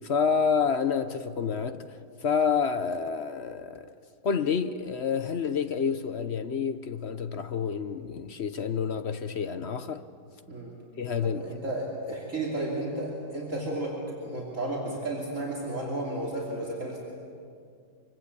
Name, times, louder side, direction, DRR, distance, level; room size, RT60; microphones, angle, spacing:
voice 1, 0.0-3.9 4.2-10.0 11.0-11.4, left 6 dB, 50° left, 0.8 m, -28 dB
voice 2, 11.2-17.0, right 1 dB, 45° right, 3.4 m, -33 dB
25.5 x 24.5 x 8.4 m
omnidirectional pair, 1.9 m